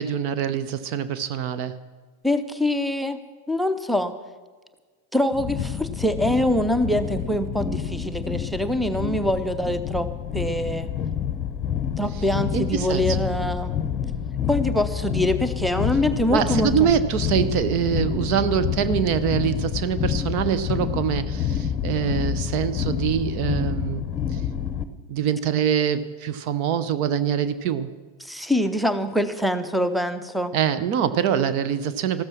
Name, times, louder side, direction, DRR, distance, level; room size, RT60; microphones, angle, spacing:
voice 1, 0.0-1.7 12.5-13.0 16.3-24.0 24.3-24.4 25.1-27.9 30.5-32.2, right 9 dB, 45° right, 11 dB, 0.7 m, -24 dB
voice 2, 2.2-3.2 3.5-4.1 5.1-10.1 10.3-10.9 12.0-13.7 14.5-16.9 28.2-30.5, left 1 dB, ahead, 11 dB, 0.8 m, -24 dB
sound 1, 5.3-24.8, left 8 dB, 30° left, 0.8 m, -28 dB
14.0 x 13.0 x 6.1 m, 1.4 s
figure-of-eight pair, 90°, 0 cm